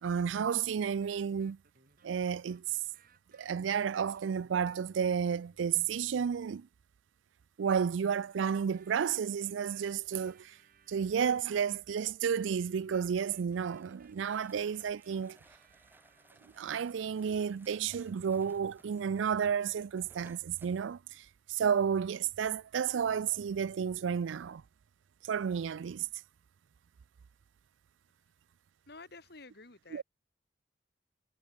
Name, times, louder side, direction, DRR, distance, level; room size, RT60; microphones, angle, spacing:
voice 1, 0.0-1.6 2.0-2.6 3.3-6.7 7.6-10.5 10.9-15.4 16.6-24.6 25.3-26.1 29.9-30.0, right 7 dB, 80° right, 0.4 m, -32 dB
sound 1, 1.0-6.7 8.7-11.7 12.3-16.8, right 4 dB, 50° right, 3.2 m, -66 dB
sound 2, 13.3-20.8, right 1 dB, 10° right, 6.3 m, -62 dB
voice 2, 28.9-30.0, left 3 dB, 55° left, 2.5 m, -51 dB
head